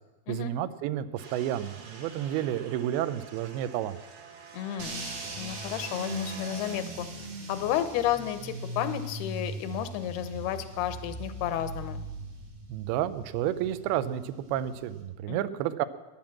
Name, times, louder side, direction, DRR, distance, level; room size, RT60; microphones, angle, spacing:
voice 1, 0.3-4.0 12.7-15.9, right 11 dB, 90° right, 13 dB, 2.6 m, -31 dB
sound 1, 1.2-6.8, right 5 dB, 55° right, 2.0 m, -47 dB
voice 2, 4.5-5.1 5.4-7.1 7.5-12.1 15.3-15.6, left 11 dB, 90° left, 10 dB, 2.8 m, -32 dB
sound 2, 4.8-15.0, right 1 dB, 75° right, 5.0 m, -40 dB
13.0 x 10.5 x 7.4 m, 1.1 s
omnidirectional pair, 4.4 m